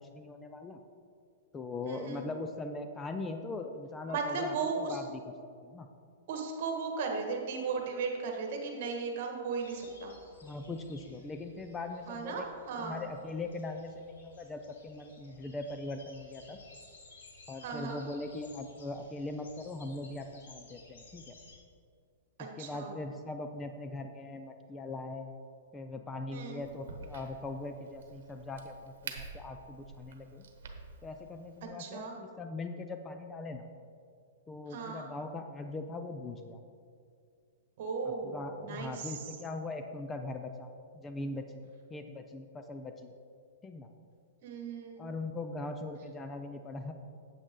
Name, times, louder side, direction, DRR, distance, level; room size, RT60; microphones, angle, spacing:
voice 1, 0.1-0.8 1.5-5.3 5.6-5.9 10.4-16.6 17.5-21.3 22.4-25.3 25.7-30.4 31.0-33.7 34.5-36.6 38.0-40.7 40.9-41.6 41.9-43.1 43.6-43.9 45.0-46.9, left 2 dB, 15° left, 6 dB, 0.4 m, -40 dB
voice 2, 1.9-2.2 4.0-5.0 6.3-10.1 12.1-13.0 17.6-18.0 22.6-22.9 26.3-26.6 31.8-32.1 34.7-35.1 37.8-38.3 38.6-39.1 44.4-45.0, right 4 dB, 55° right, 2 dB, 1.6 m, -36 dB
sound 1, 9.6-21.6, left 3 dB, 80° left, 2.2 m, -57 dB
Crack, 26.6-31.6, right 4 dB, 70° right, 1.1 m, -48 dB
8.7 x 7.9 x 3.8 m, 2.3 s
hypercardioid pair, 150°, 0 cm